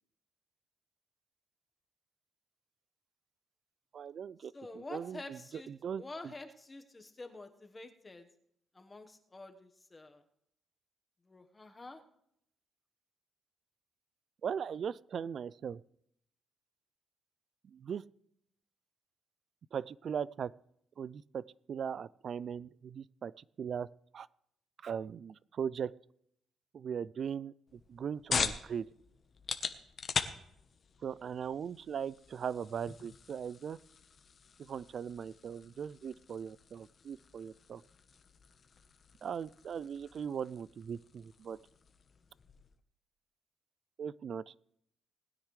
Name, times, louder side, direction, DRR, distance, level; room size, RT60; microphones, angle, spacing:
voice 1, 3.9-6.3 14.4-15.8 17.6-18.0 19.7-20.5 21.0-23.9 24.1-24.3 24.8-25.9 26.7-28.9 31.0-33.8 34.6-37.8 39.2-41.6 44.0-44.5, right 7 dB, 55° right, 21 dB, 0.4 m, -39 dB
voice 2, 4.5-5.7 6.0-8.3 8.7-10.2 11.3-12.0, left 2 dB, 25° left, 6 dB, 1.3 m, -48 dB
sound 1, 27.7-42.8, left 5 dB, 45° left, 1.0 m, -42 dB
20.0 x 9.9 x 3.3 m, 0.72 s
cardioid pair, 90°, 0 cm